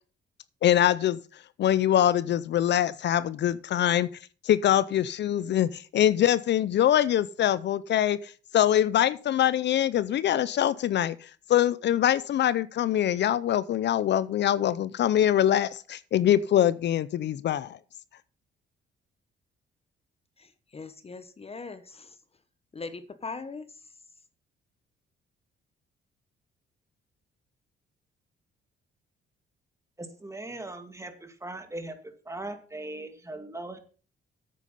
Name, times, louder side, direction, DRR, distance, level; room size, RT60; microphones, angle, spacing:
voice 1, 0.6-1.2 1.6-4.1 4.4-17.8, left 11 dB, 60° left, 0.6 m, -24 dB
voice 2, 20.4-22.2 22.7-23.7, left 4 dB, 30° left, 1.0 m, -40 dB
voice 3, 30.0-31.9 32.3-33.8, right 2 dB, 15° right, 2.2 m, -39 dB
9.2 x 8.4 x 5.5 m
cardioid pair, 90°, 20 cm